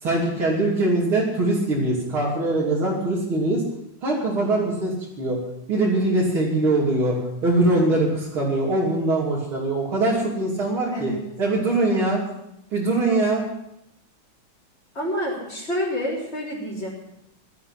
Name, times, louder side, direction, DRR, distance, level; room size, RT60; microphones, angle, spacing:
voice 1, 0.0-3.6 4.0-5.4 5.7-7.2 7.4-11.1 11.4-12.2 12.7-13.4, right 2 dB, 80° right, -7 dB, 4.1 m, -22 dB
voice 2, 10.9-11.2 11.9-12.1 14.9-16.9, equal, 30° left, -8 dB, 4.3 m, -28 dB
18.0 x 12.5 x 5.8 m, 0.81 s
omnidirectional pair, 2.3 m